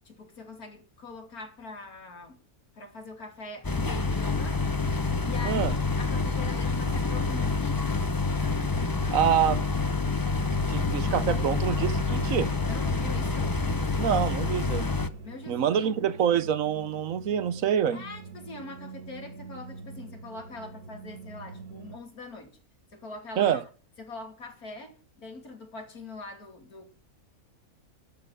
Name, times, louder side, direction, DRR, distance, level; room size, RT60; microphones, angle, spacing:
voice 1, 0.0-2.4 2.7-4.6 5.2-8.1 12.7-13.6 15.2-16.0 17.9-22.6 22.9-23.6 24.0-26.9, left 3 dB, 80° left, 3.2 m, -43 dB
sound 1, 3.6-15.1, left 3 dB, 20° left, 0.6 m, -27 dB
sound 2, 8.7-22.0, right 3 dB, 85° right, 1.9 m, -45 dB
voice 2, 9.1-9.6 10.7-12.5 14.0-14.9 15.5-18.0 23.4-23.6, right 9 dB, 65° right, 1.2 m, -26 dB
12.5 x 6.7 x 8.2 m
omnidirectional pair, 1.5 m